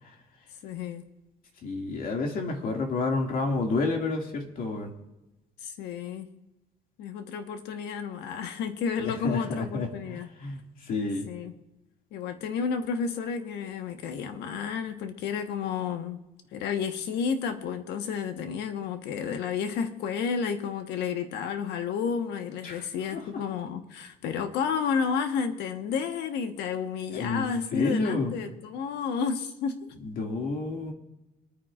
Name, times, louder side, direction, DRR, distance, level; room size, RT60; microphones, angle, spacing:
voice 1, 0.6-1.0 5.6-6.3 7.0-10.3 11.3-11.5 12.1-16.2 16.5-29.9, left 6 dB, 85° left, 7 dB, 1.3 m, -31 dB
voice 2, 1.6-4.9 9.0-10.6 10.8-11.3 22.6-22.8 23.1-23.2 27.1-27.5 27.7-28.3 30.0-30.9, left 3 dB, 55° left, 2 dB, 2.3 m, -30 dB
26.5 x 9.7 x 2.5 m, 1.0 s
cardioid pair, 110°, 17 cm